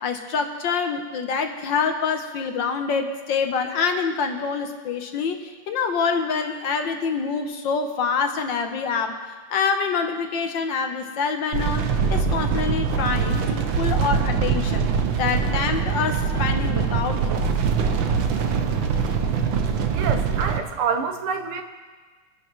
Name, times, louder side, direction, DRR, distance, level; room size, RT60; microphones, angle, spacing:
voice 1, 0.0-9.2 9.5-14.9 15.1-17.4, left 5 dB, 65° left, 5 dB, 1.5 m, -26 dB
sound 1, 11.5-20.6, right 6 dB, 70° right, 1.5 m, -23 dB
voice 2, 19.9-21.6, right 6 dB, 85° right, 6 dB, 1.9 m, -27 dB
23.0 x 11.0 x 3.1 m, 1.4 s
omnidirectional pair, 2.4 m